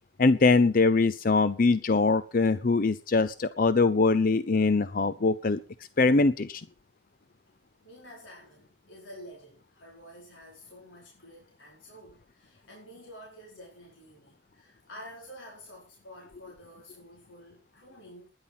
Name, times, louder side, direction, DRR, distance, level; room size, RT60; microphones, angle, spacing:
voice 1, 0.2-5.6 6.0-6.6, left 3 dB, 45° left, 15 dB, 0.5 m, -23 dB
voice 2, 7.8-18.3, equal, 85° left, -3 dB, 4.8 m, -49 dB
12.5 x 10.5 x 5.8 m, 0.38 s
head